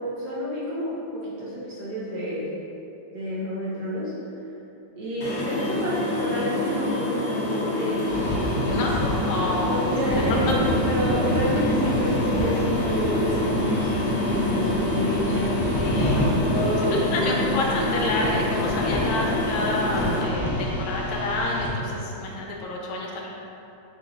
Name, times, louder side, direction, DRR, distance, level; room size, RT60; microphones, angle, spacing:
voice 1, 0.0-2.5 3.1-4.2 5.0-8.9 9.6-10.5 10.8-15.6 16.3-17.6, equal, 65° right, -7 dB, 1.0 m, -29 dB
sound 1, 5.2-20.2, left 2 dB, 50° left, 1.1 m, -28 dB
sound 2, 8.0-21.7, left 1 dB, 35° left, 0.8 m, -30 dB
voice 2, 9.2-9.8 10.3-10.6 11.8-11.9 15.8-16.3 16.9-23.3, left 2 dB, 80° left, -2 dB, 1.4 m, -29 dB
sound 3, 10.1-16.8, equal, 90° right, 2.3 m, -27 dB
6.7 x 2.9 x 2.5 m, 2.9 s
omnidirectional pair, 2.3 m